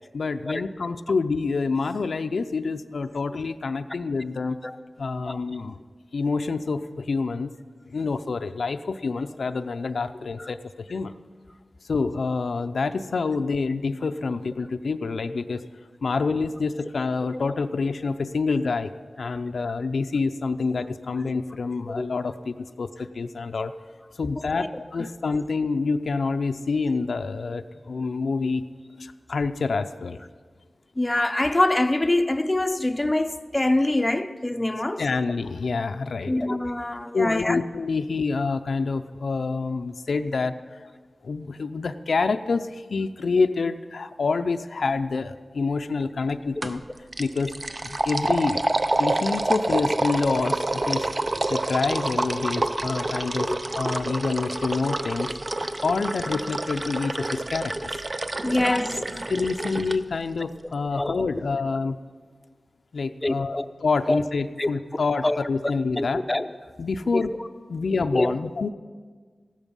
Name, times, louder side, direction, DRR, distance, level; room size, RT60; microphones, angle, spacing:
voice 1, 0.1-4.6 5.0-5.8 6.1-7.5 7.9-11.1 11.9-15.6 16.0-18.9 19.2-23.7 24.2-28.6 29.0-30.2 35.0-36.3 37.1-40.9 41.2-46.8 47.2-47.5 47.8-48.6 49.0-51.1 51.5-55.3 55.8-57.9 58.6-58.8 59.3-62.0 62.9-63.6 63.8-66.2 66.8-67.3 67.7-68.7, left 4 dB, 80° left, 0.5 m, -27 dB
voice 2, 24.3-24.7 31.0-35.1 36.3-37.6 53.5-53.6 58.4-59.0 61.0-61.1 63.2-63.7 64.1-64.2 64.6-64.7 65.2-65.4 66.0-66.5 67.1-67.2 68.1-68.3, left 1 dB, 25° left, 0.6 m, -24 dB
sound 1, 46.6-46.8 47.1-60.0, right 2 dB, 40° right, 0.6 m, -28 dB
15.0 x 12.5 x 5.4 m
wide cardioid pair, 65°, 0 cm